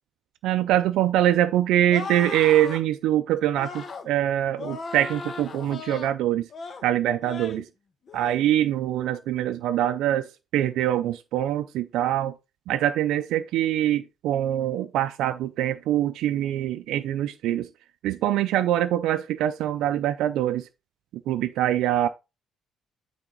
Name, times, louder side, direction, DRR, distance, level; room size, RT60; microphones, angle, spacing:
voice 1, 0.4-6.5 6.8-7.7 8.1-12.3 12.7-17.7 18.0-20.7 21.3-22.1, right 12 dB, 90° right, 0.4 m, -24 dB
sound 1, 1.9-2.8 3.5-4.1 4.6-6.1 6.5-6.9 7.2-7.6 8.1-8.4, left 4 dB, 40° left, 1.1 m, -37 dB
9.0 x 3.6 x 3.9 m
cardioid pair, 130°, 0 cm